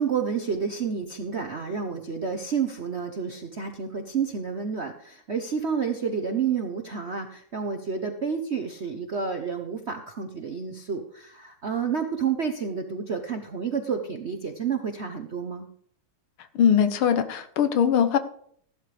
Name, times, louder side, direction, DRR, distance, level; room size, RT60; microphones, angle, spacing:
voice 1, 0.0-15.7, right 6 dB, 55° right, 5 dB, 0.7 m, -30 dB
voice 2, 16.6-18.2, left 8 dB, 75° left, 10 dB, 1.8 m, -21 dB
15.5 x 11.5 x 3.4 m, 0.62 s
omnidirectional pair, 2.4 m